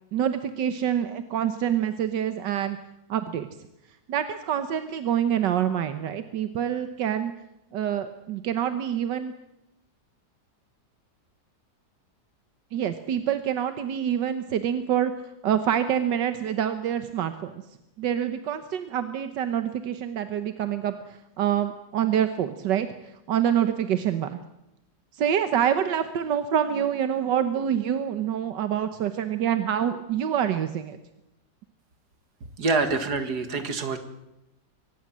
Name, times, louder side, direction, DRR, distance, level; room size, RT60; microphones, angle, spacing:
voice 1, 0.1-2.8 3.1-3.5 4.1-7.3 7.7-9.3 12.7-15.1 15.4-17.6 18.0-24.4 25.1-31.0, right 9 dB, 85° right, 10 dB, 1.7 m, -26 dB
voice 2, 32.6-34.0, right 3 dB, 65° right, 9 dB, 2.5 m, -26 dB
23.5 x 19.0 x 7.5 m, 0.89 s
omnidirectional pair, 1.9 m